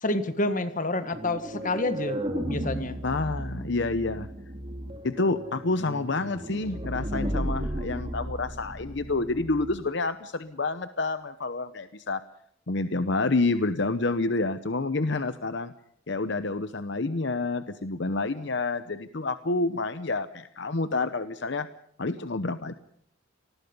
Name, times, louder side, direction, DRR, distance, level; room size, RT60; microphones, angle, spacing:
voice 1, 0.0-2.2 2.4-3.0, left 2 dB, 40° left, 10 dB, 1.7 m, -28 dB
sound 1, 1.1-9.9, right 1 dB, 25° right, 2.6 m, -34 dB
voice 2, 3.0-4.3 5.0-12.2 12.7-15.7 16.1-21.7 22.0-22.7, left 3 dB, 60° left, 11 dB, 0.8 m, -28 dB
27.5 x 20.0 x 5.4 m, 0.70 s
head